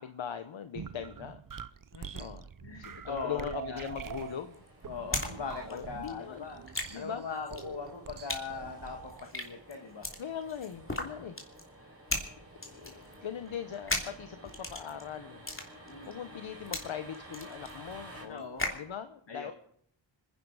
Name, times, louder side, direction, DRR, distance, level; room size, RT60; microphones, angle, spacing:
voice 1, 0.0-1.4 2.2-2.5 2.8-4.6 5.7-6.5 6.9-7.2 10.2-11.4 12.7-15.4 16.1-18.4 18.7-19.5, left 8 dB, 85° left, 9 dB, 0.9 m, -40 dB
sound 1, 0.7-9.3, right 7 dB, 45° right, 0.7 m, -45 dB
voice 2, 1.9-3.9 4.8-10.1 11.1-11.3 11.9-12.0 15.9-16.2 18.2-18.7 19.3-19.5, left 5 dB, 65° left, 3 dB, 1.8 m, -41 dB
sound 2, 3.9-5.3 5.6-18.9, left 1 dB, 25° left, 3.2 m, -38 dB
sound 3, 4.1-18.2, right 1 dB, 30° right, 4.8 m, -53 dB
25.5 x 11.0 x 4.8 m, 0.68 s
wide cardioid pair, 60°, 45 cm